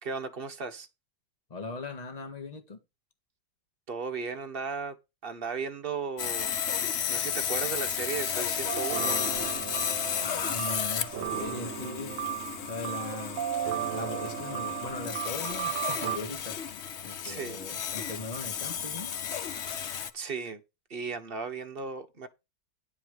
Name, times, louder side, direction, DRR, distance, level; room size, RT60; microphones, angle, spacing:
voice 1, 0.0-0.9 3.9-5.0 5.2-6.6 7.1-9.2 17.2-17.6 20.1-20.6 20.9-22.3, right 5 dB, 35° right, 1.2 m, -35 dB
voice 2, 1.5-2.8 10.2-13.5 13.9-19.2, left 3 dB, 25° left, 1.7 m, -39 dB
Sawing, 6.2-20.1, left 8 dB, 55° left, 0.8 m, -33 dB
sound 1, 8.7-16.2, right 11 dB, 60° right, 0.9 m, -35 dB
10.5 x 4.9 x 6.5 m
omnidirectional pair, 1.9 m